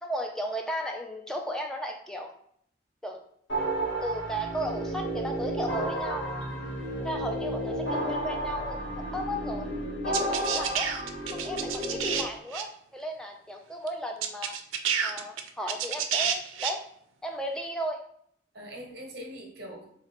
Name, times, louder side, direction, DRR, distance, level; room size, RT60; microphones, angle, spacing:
voice 1, 0.0-2.3 3.0-3.2 4.0-6.2 7.0-9.7 10.0-10.9 11.3-12.7 12.9-14.5 15.0-16.8 17.2-18.0, equal, 5° left, 2 dB, 0.3 m, -35 dB
sound 1, 3.5-12.2, right 1 dB, 80° left, 1.3 m, -32 dB
voice 2, 7.3-7.8 18.5-19.9, equal, 55° right, 1 dB, 0.8 m, -43 dB
sound 2, 10.1-12.2 12.5-12.6 13.9-14.0 14.2-16.7, right 8 dB, 90° right, 0.4 m, -29 dB
3.9 x 2.5 x 2.9 m, 0.66 s
head